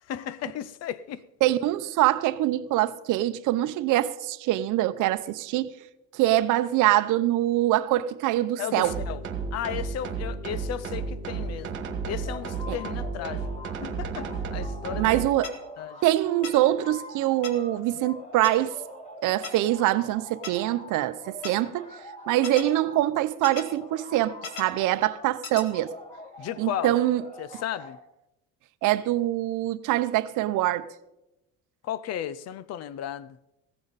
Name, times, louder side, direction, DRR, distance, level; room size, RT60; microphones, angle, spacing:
voice 1, 0.1-1.2 8.6-9.2 9.5-11.8 12.1-13.5 13.8-15.2 15.8-16.0 26.4-27.0 27.4-28.0 31.8-33.4, left 10 dB, 50° left, 0.6 m, -34 dB
voice 2, 1.4-5.7 6.1-8.9 12.7-12.8 15.0-15.5 16.0-18.7 19.2-21.9 22.3-25.9 26.6-27.2 28.8-30.9, right 14 dB, 65° right, 0.8 m, -24 dB
sound 1, 8.8-15.3, right 5 dB, 35° right, 1.7 m, -33 dB
sound 2, 12.2-13.9 14.2-23.1 23.5-25.3 25.7-28.0, equal, 20° left, 2.2 m, -45 dB
sound 3, 15.4-15.5 16.4-16.5 17.4-17.5 18.4-18.5 19.4-19.5 20.4-20.5 21.4-21.5 22.4-22.6 23.4-23.6 24.4-24.6 25.4-25.6, left 6 dB, 65° left, 2.0 m, -35 dB
15.5 x 14.0 x 4.1 m
cardioid pair, 150°, 34 cm